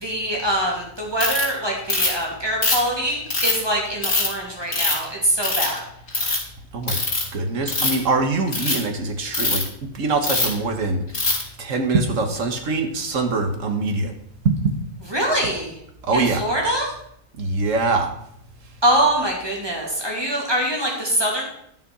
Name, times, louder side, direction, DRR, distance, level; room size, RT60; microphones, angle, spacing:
voice 1, 0.0-5.8 15.1-15.7 16.1-16.9 18.8-21.4, right 1 dB, 15° right, -2 dB, 2.9 m, -23 dB
Ratchet pawl, 1.2-1.4 1.9-2.2 2.6-3.6 4.0-4.3 4.7-5.0 5.4-5.8 6.1-6.4 6.9-7.2 7.6-8.0 8.5-8.8 9.3-9.6 10.2-10.6 11.1-11.4, left 3 dB, 40° left, 3.4 m, -22 dB
voice 2, 7.3-9.6 9.9-11.0 11.6-14.1 14.4-14.5 16.1-16.4 17.4-18.1, right 3 dB, 55° right, 5 dB, 1.7 m, -23 dB
11.0 x 6.6 x 6.2 m, 0.72 s
omnidirectional pair, 1.7 m